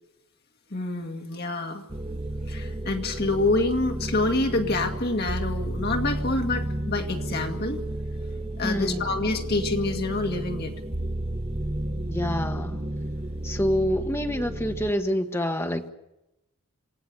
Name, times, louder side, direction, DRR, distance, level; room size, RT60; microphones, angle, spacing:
voice 1, 0.7-1.8 2.5-7.8 8.6-10.7, left 2 dB, 45° left, 4 dB, 2.0 m, -27 dB
sound 1, 1.9-14.9, right 1 dB, 25° right, 0.9 m, -32 dB
voice 2, 8.6-9.0 12.1-12.8 13.4-15.9, equal, 10° left, 5 dB, 1.2 m, -27 dB
27.0 x 18.0 x 6.9 m, 0.90 s
head